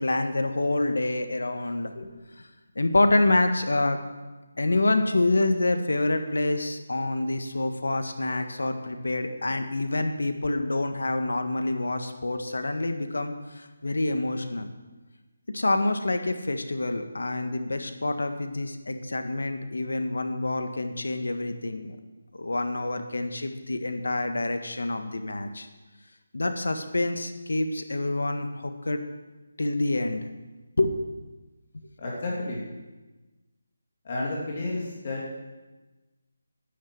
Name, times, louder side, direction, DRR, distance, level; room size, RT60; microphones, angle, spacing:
voice 1, 0.0-2.1 2.7-4.0 4.6-14.7 15.5-22.0 22.3-25.7 26.3-29.0 29.6-30.2 30.8-30.9, left 2 dB, 85° left, 7 dB, 1.7 m, -27 dB
voice 2, 32.0-32.6 34.0-35.2, left 2 dB, 35° left, -4 dB, 2.9 m, -31 dB
10.5 x 10.5 x 7.7 m, 1.2 s
figure-of-eight pair, 170°, 0 cm